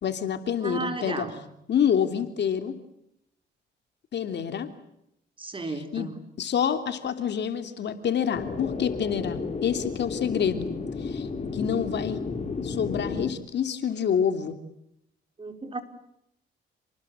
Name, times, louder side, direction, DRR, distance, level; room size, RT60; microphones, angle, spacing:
voice 1, 0.0-1.2 1.7-2.8 4.1-4.7 5.9-6.1 6.4-10.7 11.0-12.2 12.6-14.6, left 8 dB, 60° left, 9 dB, 3.1 m, -27 dB
voice 2, 0.6-1.4 5.4-6.2 15.4-15.8, right 3 dB, 25° right, 8 dB, 4.6 m, -34 dB
sound 1, 8.3-13.3, left 4 dB, 35° left, 3.6 m, -32 dB
29.0 x 20.5 x 8.8 m, 0.79 s
cardioid pair, 90°, 20 cm